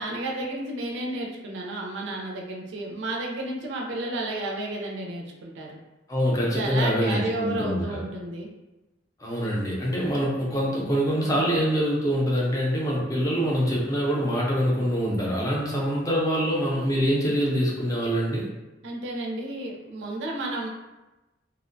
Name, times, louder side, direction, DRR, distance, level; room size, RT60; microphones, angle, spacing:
voice 1, 0.0-5.8 6.4-8.5 18.8-20.7, right 2 dB, 75° right, -1 dB, 0.4 m, -32 dB
voice 2, 6.1-8.0 9.2-18.5, equal, 20° left, -4 dB, 0.5 m, -25 dB
2.5 x 2.1 x 2.5 m, 1.0 s
head